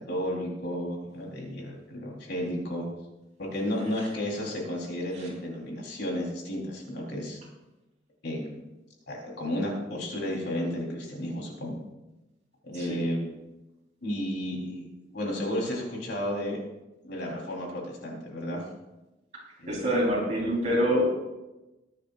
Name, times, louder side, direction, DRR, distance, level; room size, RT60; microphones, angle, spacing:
voice 1, 0.1-2.9 3.4-7.4 8.2-8.5 9.1-11.8 12.7-13.2 14.0-14.9 15.1-16.6 17.0-18.6 19.6-19.8, equal, 65° left, -1 dB, 3.9 m, -32 dB
voice 2, 19.7-21.1, equal, 40° right, -4 dB, 4.2 m, -26 dB
21.5 x 9.8 x 2.5 m, 1.0 s
head